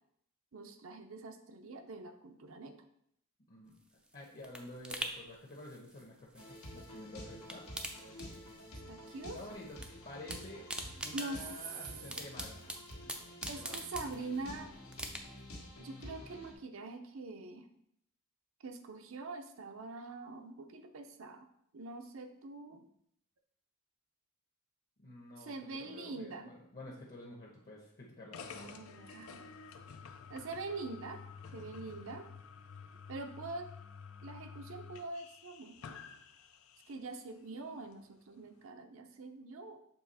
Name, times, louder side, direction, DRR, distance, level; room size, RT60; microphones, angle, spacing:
voice 1, 0.5-2.8 8.9-9.4 11.1-11.4 13.5-14.7 15.8-17.6 18.6-21.5 21.7-22.9 25.4-26.5 28.6-29.5 30.3-31.2 31.5-32.3 33.1-33.7 34.2-36.0 36.9-39.8, right 3 dB, 65° right, 6 dB, 0.6 m, -44 dB
sound 1, 3.7-7.0 7.3-8.8 9.1-9.9 10.1-14.5 14.9-15.6 16.0-16.1, right 1 dB, 5° right, 0.5 m, -44 dB
voice 2, 4.1-7.7 9.3-9.8 10.0-10.6 11.0-12.6 13.5-13.8 25.0-28.8, left 1 dB, 45° left, -3 dB, 1.0 m, -50 dB
sound 2, 6.4-16.5, left 1 dB, 90° left, 1.5 m, -49 dB
sound 3, 28.3-37.1, left 6 dB, 70° left, 0.5 m, -50 dB
7.1 x 3.3 x 4.1 m, 0.71 s
head